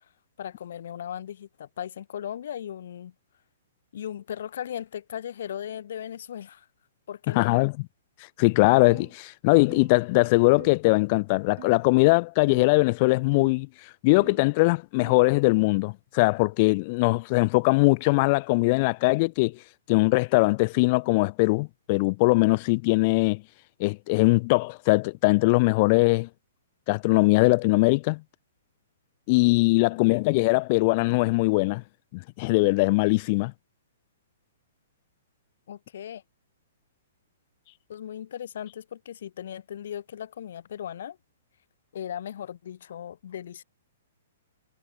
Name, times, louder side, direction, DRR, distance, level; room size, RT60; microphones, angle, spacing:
voice 1, 0.4-3.1 3.9-6.7 7.1-7.7 30.1-30.2 35.7-36.2 37.9-41.2 41.9-43.6, left 10 dB, 65° left, 4.7 m, -37 dB
voice 2, 7.3-7.7 8.4-13.7 14.0-19.6 19.9-23.4 23.8-26.3 26.9-28.2 29.3-31.8 32.1-33.5, left 26 dB, 40° left, 0.8 m, -21 dB
sound 1, 8.9-9.1 9.7-10.0 10.6-10.8 11.6-11.9 12.5-12.7 13.3-13.6 14.2-14.5 15.0-15.3, right 15 dB, 50° right, 5.6 m, -45 dB
hypercardioid pair, 140°, 0 cm